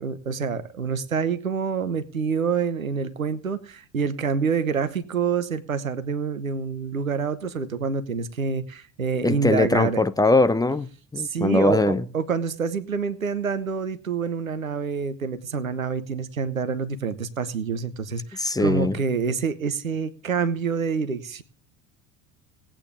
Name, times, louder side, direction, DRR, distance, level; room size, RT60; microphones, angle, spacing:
voice 1, 0.0-10.0 11.2-21.4, right 5 dB, 90° right, 1.0 m, -27 dB
voice 2, 9.2-12.0 18.4-19.0, left 2 dB, 10° left, 0.7 m, -21 dB
18.5 x 8.9 x 3.3 m
figure-of-eight pair, 70°, 40 cm